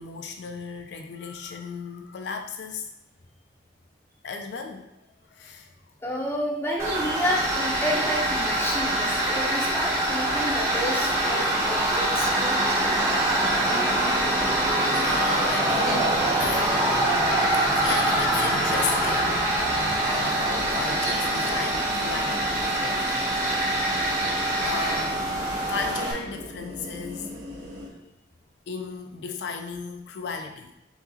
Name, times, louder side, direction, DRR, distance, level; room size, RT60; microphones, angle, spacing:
voice 1, 0.0-2.9 4.2-4.9 5.3-5.7 14.8-23.2 24.6-25.2 25.7-27.3 28.7-30.7, left 5 dB, 65° left, 4 dB, 0.3 m, -35 dB
voice 2, 6.0-12.5 14.3-14.5, equal, 15° left, -1 dB, 0.6 m, -30 dB
Tools, 6.8-26.1, right 1 dB, 15° right, 0.9 m, -24 dB
sound 1, 10.5-27.9, left 1 dB, 65° right, 1.3 m, -39 dB
4.7 x 3.8 x 2.7 m, 0.87 s
head